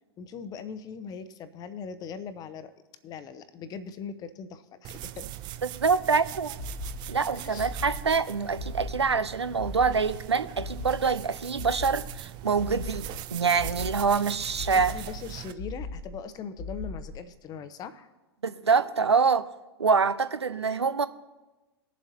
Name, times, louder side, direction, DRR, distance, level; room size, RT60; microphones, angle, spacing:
voice 1, 0.2-2.7 3.0-5.3 7.3-7.7 14.7-18.1, left 6 dB, 30° left, 0.8 m, -40 dB
sound 1, 4.8-15.5, right 13 dB, 30° right, 0.5 m, -41 dB
voice 2, 5.6-6.6 7.1-15.0 18.4-19.5 19.8-21.1, right 5 dB, 85° right, 0.5 m, -25 dB
sound 2, 6.6-7.2 7.6-8.2 8.6-9.2 9.6-10.2 10.6-11.2 11.6-12.2 12.6-13.2 13.6-14.2 14.6-15.2 15.6-16.2 16.6-17.2, left 3 dB, 45° left, 1.5 m, -38 dB
19.5 x 7.4 x 2.8 m
figure-of-eight pair, 100°, 14 cm